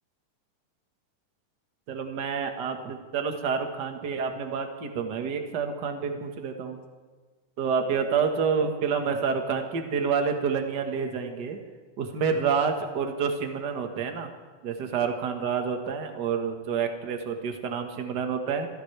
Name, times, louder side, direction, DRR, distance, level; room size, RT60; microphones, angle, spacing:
voice 1, 1.9-6.8 7.6-11.6 12.0-14.3 14.6-18.7, right 6 dB, 45° right, 4 dB, 1.6 m, -28 dB
25.5 x 16.5 x 3.4 m, 1.4 s
omnidirectional pair, 3.7 m